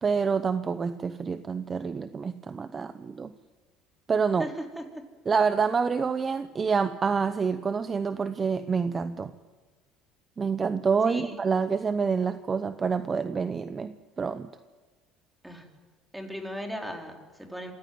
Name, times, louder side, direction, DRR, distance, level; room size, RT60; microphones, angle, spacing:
voice 1, 0.0-3.3 4.1-4.5 5.3-9.3 10.4-14.5, right 5 dB, 30° right, 12 dB, 0.8 m, -27 dB
voice 2, 4.4-5.0 11.0-11.3 15.4-15.7 16.1-17.7, equal, 5° right, 3 dB, 4.1 m, -37 dB
26.5 x 16.5 x 9.5 m, 1.4 s
supercardioid pair, 110°, 0 cm